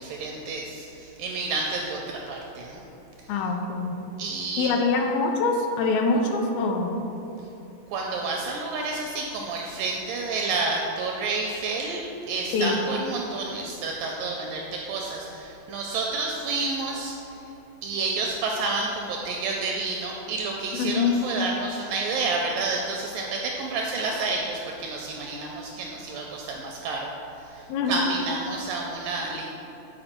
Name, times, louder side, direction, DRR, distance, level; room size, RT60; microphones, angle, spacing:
voice 1, 0.0-2.8 4.2-4.7 7.9-12.0 12.3-17.4 17.8-27.1 27.5-29.4, right 3 dB, 85° right, 0 dB, 2.0 m, -30 dB
voice 2, 3.3-4.0 4.6-7.1 12.5-12.8 20.7-21.2 27.7-28.0, left 4 dB, 80° left, 3 dB, 2.3 m, -24 dB
7.7 x 4.5 x 4.3 m, 3.0 s
omnidirectional pair, 4.3 m